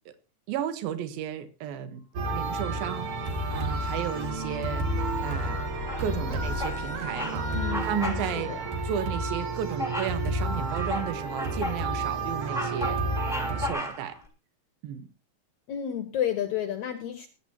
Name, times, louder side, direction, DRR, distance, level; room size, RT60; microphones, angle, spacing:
voice 1, 0.5-2.0 2.3-5.7 6.0-7.5 7.8-8.5 8.8-13.0 13.3-14.2 14.8-15.1, right 9 dB, 75° right, 9 dB, 3.0 m, -34 dB
sound 1, 2.2-13.7, right 2 dB, 55° right, 3.1 m, -31 dB
sound 2, 2.5-10.5 11.1-11.2, left 6 dB, 45° left, 1.1 m, -41 dB
Bird vocalization bird call bird song, 5.8-6.2 6.6-6.8 7.1-7.4 7.7-8.2 8.6-8.7 9.8-10.2 10.7-11.8 12.2-14.2, left 1 dB, ahead, 2.4 m, -34 dB
voice 2, 7.5-8.6 15.7-17.3, left 10 dB, 65° left, 7 dB, 1.9 m, -31 dB
20.5 x 11.0 x 2.8 m, 0.30 s
omnidirectional pair, 4.4 m